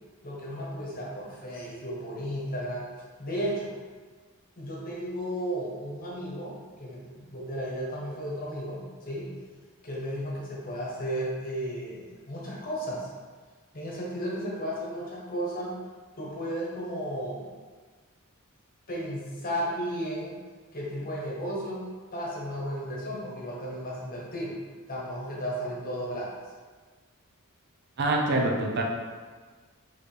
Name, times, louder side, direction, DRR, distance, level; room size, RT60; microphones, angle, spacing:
voice 1, 0.2-2.8 3.2-3.7 4.6-9.3 9.8-13.1 13.7-15.8 16.1-17.5 18.9-20.4 20.7-21.8 22.1-24.6 24.9-26.3, equal, 40° left, -4 dB, 1.1 m, -34 dB
voice 2, 28.0-28.8, right 2 dB, 50° right, -1 dB, 0.6 m, -25 dB
4.6 x 3.1 x 3.3 m, 1.4 s
head